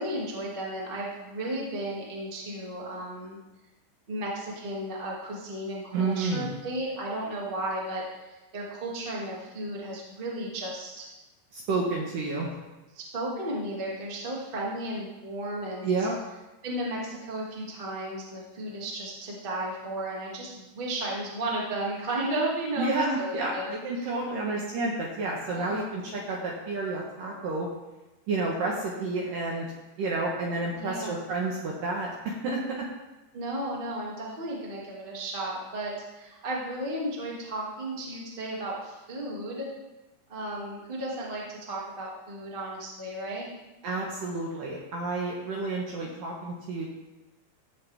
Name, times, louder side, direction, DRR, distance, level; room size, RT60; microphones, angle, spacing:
voice 1, 0.0-3.4 4.1-11.0 12.9-16.1 16.6-23.7 24.0-24.1 25.5-26.1 30.7-31.2 33.3-39.7 40.3-43.5, right 1 dB, 30° right, -4 dB, 0.9 m, -34 dB
voice 2, 5.9-6.5 11.5-12.6 15.8-16.2 22.8-27.7 28.3-29.7 30.0-32.9 43.8-46.9, right 3 dB, 70° right, -2 dB, 2.2 m, -30 dB
16.0 x 7.8 x 3.5 m, 1.1 s
omnidirectional pair, 5.2 m